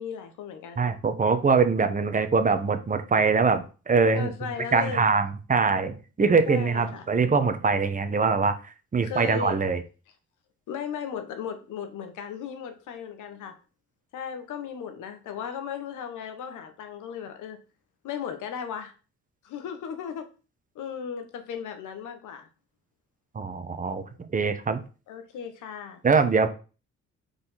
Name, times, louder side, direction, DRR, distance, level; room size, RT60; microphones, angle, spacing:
voice 1, 0.0-0.9 4.1-5.1 6.5-7.1 9.0-9.6 10.7-13.6 14.1-17.6 18.0-18.9 19.4-20.3 20.7-22.5 23.9-24.2 25.1-26.0, left 7 dB, 85° left, 1.3 m, -36 dB
voice 2, 0.8-4.3 4.7-8.6 8.9-9.8 23.3-24.0 24.3-24.8 26.0-26.5, right 4 dB, 25° right, 1.0 m, -23 dB
5.1 x 4.4 x 5.8 m
cardioid pair, 90°, 30 cm